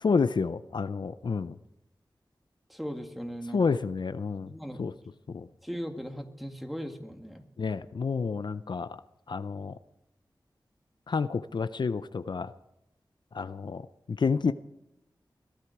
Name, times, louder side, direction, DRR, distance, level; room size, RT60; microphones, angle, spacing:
voice 1, 0.0-1.6 3.5-4.5 4.8-4.9 5.3-5.5 7.6-9.0 9.3-9.8 11.1-12.5 13.3-14.5, left 5 dB, 65° left, 12 dB, 0.5 m, -29 dB
voice 2, 2.7-3.6 4.5-4.8 5.6-7.5, equal, ahead, 4 dB, 2.1 m, -38 dB
22.0 x 13.0 x 4.7 m, 0.87 s
wide cardioid pair, 65°, 8 cm